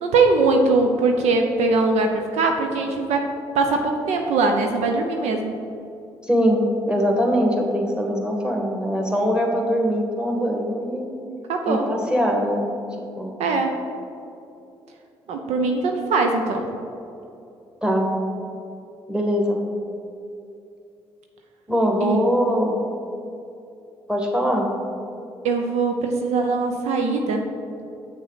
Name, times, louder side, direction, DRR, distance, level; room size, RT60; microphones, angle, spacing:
voice 1, 0.0-3.3 3.5-5.5 11.5-11.9 13.4-13.7 15.3-16.7 22.0-22.2 25.4-27.5, right 3 dB, 70° right, 4 dB, 0.6 m, -21 dB
voice 2, 6.2-11.1 11.7-12.7 13.2-13.3 17.8-18.1 19.1-19.6 21.7-22.8 24.1-24.7, equal, 5° right, 0 dB, 1.7 m, -22 dB
7.3 x 6.2 x 4.0 m, 2.7 s
hypercardioid pair, 45°, 12 cm